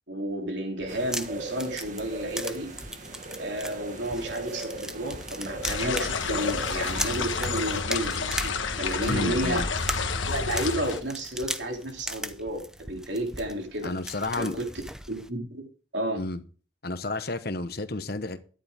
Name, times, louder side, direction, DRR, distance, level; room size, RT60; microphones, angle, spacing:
voice 1, 0.1-2.7 3.4-9.6 10.2-13.9 14.4-14.7 15.1-15.7 15.9-16.2, right 1 dB, 70° right, 3.1 m, -32 dB
sound 1, 0.8-15.3, right 1 dB, 5° right, 0.6 m, -39 dB
sound 2, 0.9-7.8, right 2 dB, 40° right, 1.7 m, -39 dB
sound 3, 5.6-11.0, left 5 dB, 90° left, 1.4 m, -29 dB
voice 2, 9.1-9.7 13.8-14.6 16.2-16.4 16.8-18.4, left 2 dB, 55° left, 1.1 m, -31 dB
13.0 x 11.0 x 3.6 m
head